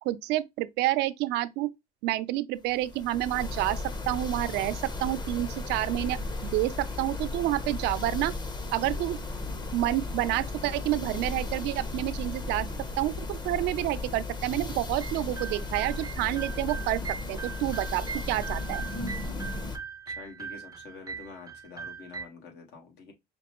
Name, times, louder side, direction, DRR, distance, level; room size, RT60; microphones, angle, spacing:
voice 1, 0.0-1.7 2.0-8.3 8.7-9.2 9.7-12.7 13.0-17.0 17.3-18.8, right 16 dB, 90° right, 0.4 m, -29 dB
sound 1, 2.8-19.8, left 2 dB, 25° left, 0.8 m, -35 dB
sound 2, 15.0-22.3, right 6 dB, 25° right, 0.4 m, -40 dB
voice 2, 20.0-23.1, left 4 dB, 80° left, 1.5 m, -47 dB
5.1 x 2.2 x 2.9 m
cardioid pair, 110°, 17 cm